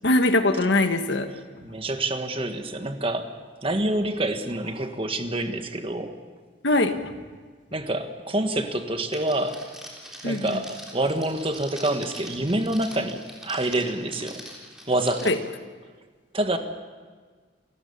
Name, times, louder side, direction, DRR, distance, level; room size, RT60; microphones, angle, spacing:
voice 1, 0.0-1.3 6.6-7.0 10.2-10.6 15.2-15.4, left 2 dB, 65° left, 8 dB, 1.4 m, -21 dB
voice 2, 1.6-3.3 3.6-6.2 7.7-9.6 10.2-14.4 14.9-15.3 16.3-16.6, right 1 dB, 30° right, 7 dB, 1.5 m, -27 dB
Crackle, 9.1-15.3, equal, 5° right, 3.7 m, -42 dB
28.0 x 14.5 x 7.0 m, 1.5 s
head